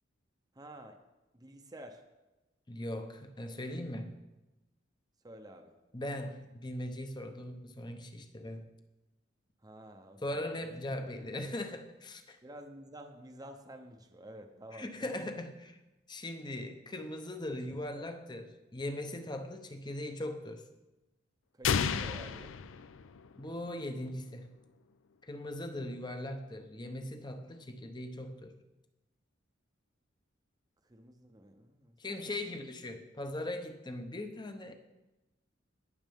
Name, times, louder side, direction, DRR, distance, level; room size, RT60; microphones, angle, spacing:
voice 1, 0.5-1.0 1.3-2.0 5.2-5.7 9.6-10.7 11.3-11.5 12.4-15.2 18.0-18.2 21.5-22.6 30.8-32.0, right 1 dB, 20° right, 0.7 m, -50 dB
voice 2, 2.7-4.2 5.9-8.7 10.2-12.4 14.7-15.8 16.1-20.6 23.3-24.5 25.2-28.5 32.0-34.7, left 1 dB, 20° left, 0.8 m, -40 dB
sound 1, 21.6-23.6, left 6 dB, 80° left, 0.5 m, -32 dB
18.0 x 6.5 x 3.6 m
head